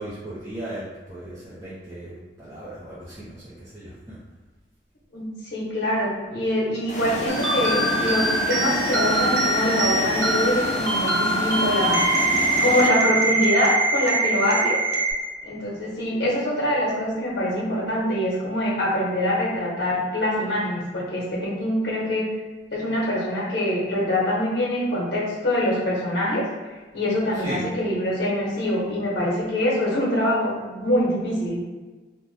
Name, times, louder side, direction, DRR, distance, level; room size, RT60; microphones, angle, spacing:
voice 1, 0.0-4.2 27.3-27.6, right 1 dB, 15° right, -11 dB, 0.6 m, -36 dB
voice 2, 5.1-12.0 12.6-14.8 15.4-22.3 22.7-26.4 26.9-31.6, left 1 dB, 70° left, -6 dB, 0.9 m, -24 dB
sound 1, 6.9-12.9, left 1 dB, 40° left, 0.4 m, -29 dB
sound 2, 7.3-15.1, right 2 dB, 75° right, 0.6 m, -23 dB
2.7 x 2.1 x 3.1 m, 1.3 s
head